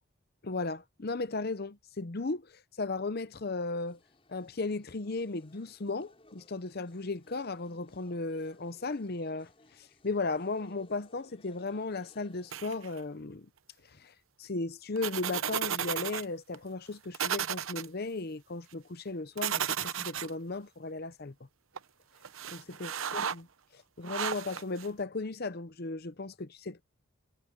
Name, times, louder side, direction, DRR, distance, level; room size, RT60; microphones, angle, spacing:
voice 1, 0.4-4.0 4.3-13.5 13.9-14.1 14.4-21.3 22.5-23.5 23.7-26.8, left 3 dB, 50° left, 0.8 m, -36 dB
sound 1, 3.8-12.9, left 2 dB, 25° left, 5.1 m, -62 dB
sound 2, 12.5-13.0 15.0-16.2 16.5-16.6 17.1-17.9 19.4-20.3 21.8-21.9 22.2-23.3 24.0-24.9, right 8 dB, 75° right, 0.9 m, -33 dB
head